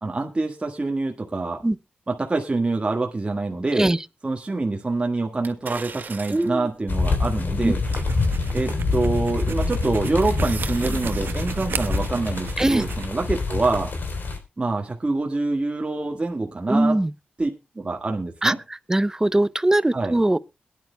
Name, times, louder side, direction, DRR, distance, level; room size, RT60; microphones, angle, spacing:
voice 1, 0.0-1.6 2.1-3.9 4.2-7.8 8.5-13.9 14.6-17.0 17.4-17.5 17.7-18.6 19.9-20.1, right 3 dB, 30° right, 1.6 m, -26 dB
sound 1, 5.4-6.7 7.3-7.4 9.0-9.3 9.7-11.3 11.6-11.7, right 5 dB, 60° right, 2.0 m, -38 dB
voice 2, 6.3-6.7 7.6-7.7 12.6-12.9 16.7-17.1 18.4-20.4, right 1 dB, 15° right, 0.6 m, -21 dB
sound 2, 6.9-14.4, left 3 dB, 70° left, 3.5 m, -26 dB
sound 3, 7.8-13.1, right 5 dB, 80° right, 0.8 m, -33 dB
22.0 x 10.5 x 2.2 m
cardioid pair, 70°, 3 cm